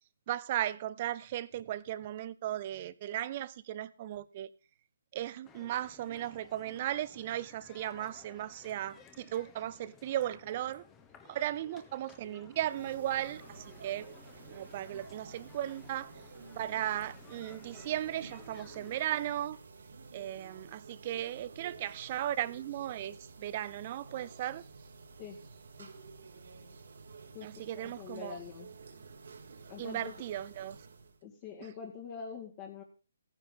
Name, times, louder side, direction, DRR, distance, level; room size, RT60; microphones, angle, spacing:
voice 1, 0.3-4.5 5.1-10.8 11.3-14.1 14.5-16.1 16.6-19.6 20.1-24.6 27.4-28.4 29.8-30.8, right 12 dB, 35° right, 18 dB, 0.6 m, -36 dB
sound 1, 5.4-19.3, left 6 dB, 15° left, 1.1 m, -57 dB
sound 2, 12.6-31.2, right 4 dB, 70° right, 1.9 m, -51 dB
voice 2, 27.7-28.7 29.7-30.1 31.2-32.8, left 7 dB, 30° left, -1 dB, 1.9 m, -44 dB
15.0 x 9.8 x 3.9 m, 0.35 s
hypercardioid pair, 150°, 0 cm